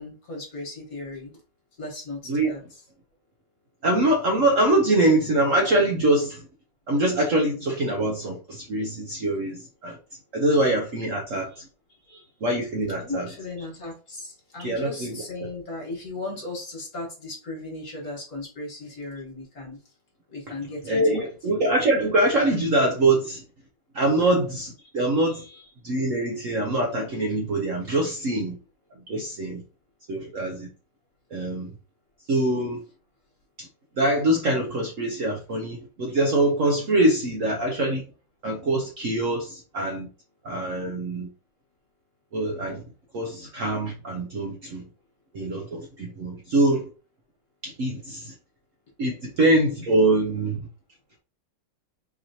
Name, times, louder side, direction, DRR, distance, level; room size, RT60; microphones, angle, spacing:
voice 1, 0.0-1.3 1.8-2.6 11.5-11.6 12.0-12.3 13.0-19.8 20.3-21.3 25.2-25.6, left 2 dB, 45° left, 1.7 m, -37 dB
voice 2, 3.8-6.5 6.9-10.0 10.3-11.7 12.4-13.3 14.6-15.2 20.5-20.6 20.8-23.4 23.9-25.4 25.8-28.6 29.1-29.6 30.1-30.7 31.3-31.7 32.3-32.8 33.6-33.7 34.0-38.0 38.4-40.1 40.4-41.3 42.3-42.8 43.1-44.8 45.3-46.9 47.6-48.3 49.0-50.6, right 1 dB, 75° right, 0.7 m, -24 dB
4.6 x 2.9 x 2.7 m
omnidirectional pair, 2.3 m